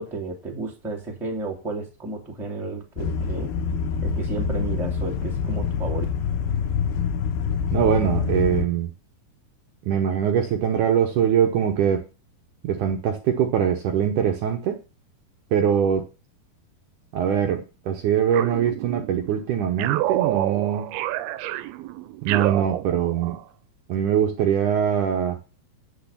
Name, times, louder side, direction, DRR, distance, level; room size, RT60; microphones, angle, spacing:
voice 1, 0.0-3.5 4.0-6.0, right 3 dB, ahead, 0 dB, 1.3 m, -32 dB
sound 1, 3.0-8.6, left 6 dB, 85° left, 2.9 m, -26 dB
voice 2, 7.7-8.9 9.8-12.0 12.6-14.8 15.5-16.0 17.1-20.9 22.2-23.4 23.9-25.4, right 9 dB, 70° right, 4 dB, 2.1 m, -22 dB
sound 2, 18.3-19.3 19.8-23.4, right 15 dB, 85° right, 2.6 m, -28 dB
8.4 x 6.4 x 7.0 m, 0.33 s
omnidirectional pair, 4.4 m